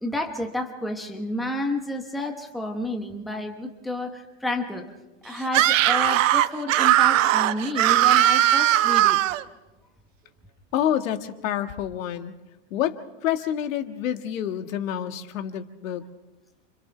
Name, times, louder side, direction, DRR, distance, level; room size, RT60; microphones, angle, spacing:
voice 1, 0.0-4.9 5.2-9.2, left 1 dB, ahead, 2 dB, 0.9 m, -30 dB
Screaming, 5.5-9.4, right 14 dB, 70° right, 0.9 m, -19 dB
voice 2, 10.7-12.3 12.7-16.0, left 10 dB, 70° left, 7 dB, 1.8 m, -28 dB
29.5 x 27.0 x 3.4 m, 1.1 s
supercardioid pair, 170°, 40 cm